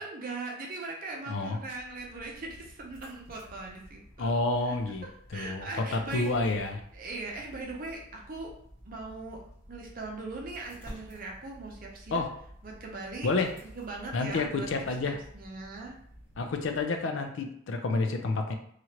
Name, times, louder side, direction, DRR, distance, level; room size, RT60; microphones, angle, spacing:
voice 1, 0.0-4.3 4.7-4.8 5.3-6.3 6.7-8.5 8.8-9.4 9.7-12.2 12.6-13.3 13.7-14.7 15.3-16.0, right 3 dB, 40° right, -1 dB, 0.5 m, -40 dB
sound 1, 1.4-17.1, equal, 5° right, 1.1 m, -52 dB
voice 2, 4.2-5.1 5.3-6.8 12.1-12.3 13.2-13.5 14.1-15.2 16.4-18.6, left 3 dB, 60° left, 5 dB, 0.4 m, -29 dB
3.0 x 2.4 x 2.8 m, 0.68 s
head